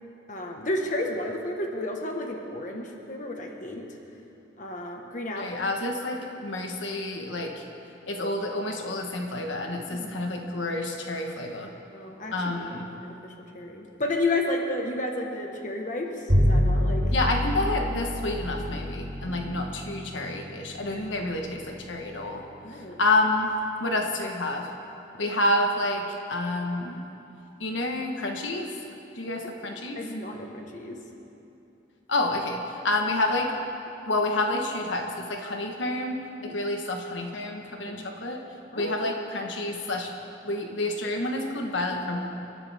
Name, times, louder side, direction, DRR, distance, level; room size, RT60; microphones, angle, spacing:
voice 1, 0.3-3.9 4.6-5.5 9.9-10.1 11.9-12.6 13.0-17.0 19.3-19.4 22.6-23.0 29.9-31.0 36.4-36.6 37.9-38.1 38.7-39.1, left 2 dB, 40° left, 1 dB, 1.5 m, -32 dB
voice 2, 5.3-7.6 8.1-11.7 12.3-12.9 17.1-22.4 22.7-23.5 23.8-24.7 25.2-27.0 27.6-28.7 29.1-30.0 32.1-33.5 34.0-36.2 36.4-38.4 38.7-40.1 40.4-42.3, left 2 dB, 80° left, 2 dB, 1.4 m, -29 dB
Bowed string instrument, 16.3-22.8, equal, 70° right, 4.1 m, -28 dB
29.0 x 12.0 x 3.6 m, 2.9 s
head